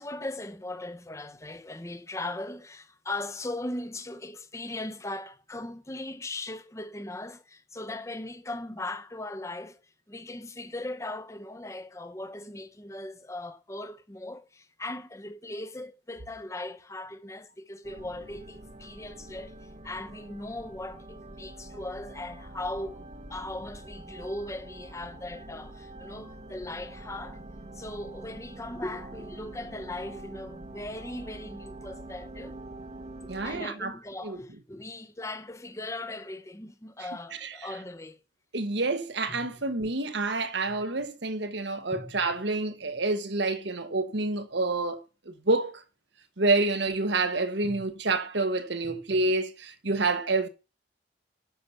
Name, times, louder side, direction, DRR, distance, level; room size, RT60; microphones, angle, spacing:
voice 1, 0.0-9.8 10.1-19.6 19.8-27.4 27.7-32.6 33.4-38.2 39.3-39.4 41.9-42.1 47.6-47.8 48.9-49.0, left 2 dB, 15° left, 0.8 m, -38 dB
sound 1, 17.8-33.6, right 2 dB, 35° right, 1.0 m, -45 dB
voice 2, 33.3-33.9 34.2-34.4 37.3-37.6 38.5-45.8 46.4-50.5, right 3 dB, 70° right, 1.3 m, -28 dB
10.5 x 6.7 x 5.7 m
head